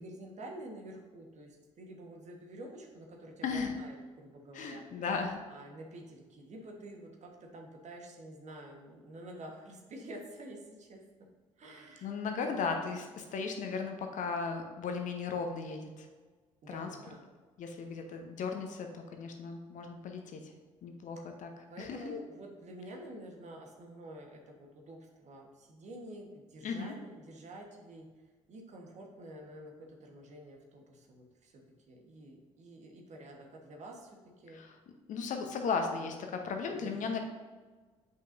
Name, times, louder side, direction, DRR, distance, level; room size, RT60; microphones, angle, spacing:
voice 1, 0.0-4.9 5.5-11.0 11.6-12.1 12.4-12.8 16.6-17.2 21.2-21.3 21.7-28.1 28.5-34.6 36.7-37.2, right 1 dB, 45° right, 1 dB, 1.3 m, -49 dB
voice 2, 3.4-3.7 4.5-5.4 12.0-16.1 16.7-16.9 17.6-20.5 20.8-21.5 21.8-22.1 26.6-26.9 34.5-34.8 35.1-37.2, left 5 dB, 50° left, 4 dB, 0.9 m, -36 dB
8.2 x 5.4 x 2.6 m, 1.3 s
figure-of-eight pair, 45°, 16 cm